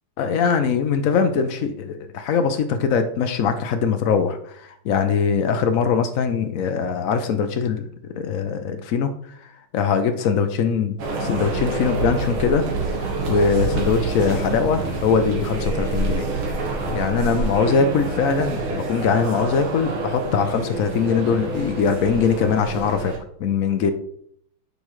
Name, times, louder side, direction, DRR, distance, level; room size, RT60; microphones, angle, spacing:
voice 1, 0.2-9.1 9.4-10.9 11.2-12.7 13.0-16.3 16.9-23.1 23.4-23.9, left 6 dB, 90° left, 7 dB, 0.7 m, -22 dB
sound 1, 11.0-23.2, right 3 dB, 90° right, 2.2 m, -27 dB
8.3 x 5.4 x 3.1 m, 0.65 s
omnidirectional pair, 2.3 m